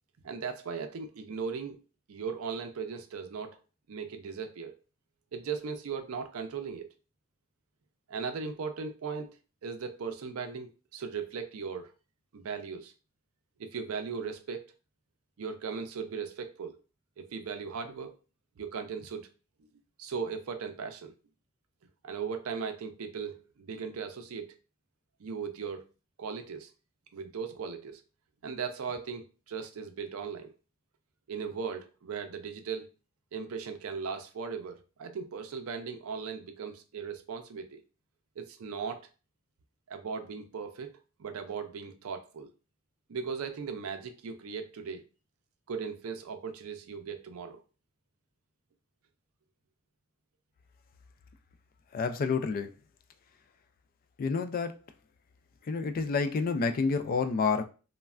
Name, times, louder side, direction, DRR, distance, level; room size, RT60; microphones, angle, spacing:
voice 1, 0.2-1.8 2.1-3.6 3.9-4.7 5.3-6.9 8.1-9.3 9.6-11.9 12.3-12.9 13.6-14.6 15.4-16.8 17.2-18.1 18.6-19.3 20.0-21.1 22.0-24.5 25.2-25.8 26.2-26.7 27.1-28.0 28.4-30.5 31.3-32.9 33.3-37.8 38.4-39.0 39.9-40.9 41.2-42.5 43.1-45.0 45.7-47.6, right 5 dB, 70° right, 0.4 m, -38 dB
voice 2, 51.9-52.7 54.2-54.8 55.7-57.7, left 4 dB, 40° left, 0.3 m, -29 dB
3.1 x 2.2 x 2.3 m
head